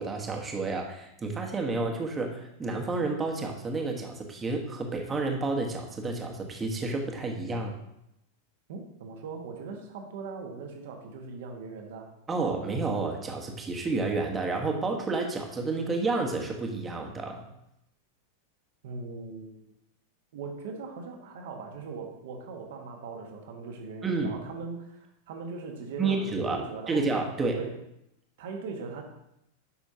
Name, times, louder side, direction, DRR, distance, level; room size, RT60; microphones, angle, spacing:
voice 1, 0.0-7.7 12.3-17.4 24.0-24.4 26.0-27.6, right 3 dB, 15° right, 2 dB, 1.5 m, -30 dB
voice 2, 8.7-12.1 18.8-19.7 20.3-27.0 27.6-27.8 28.4-29.0, right 4 dB, 55° right, 3 dB, 1.5 m, -40 dB
10.0 x 6.1 x 2.9 m, 0.82 s
figure-of-eight pair, 90°, 0 cm